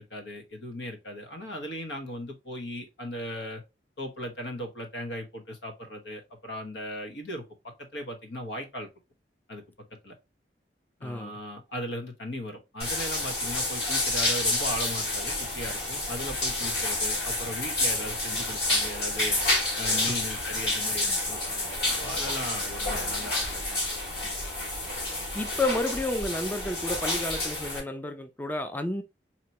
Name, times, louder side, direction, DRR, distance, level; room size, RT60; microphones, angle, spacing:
voice 1, 0.0-3.6 4.0-7.4 7.9-8.9 9.5-9.6 10.0-10.1 11.0-19.4 19.8-23.8 24.2-24.4, equal, 90° left, 1.1 m, -37 dB
voice 2, 11.0-11.4 20.1-20.2 21.0-21.2 25.3-29.0, left 1 dB, 10° left, 0.3 m, -31 dB
sound 1, 12.8-27.8, left 2 dB, 65° left, 2.6 m, -29 dB
4.4 x 2.9 x 2.8 m
head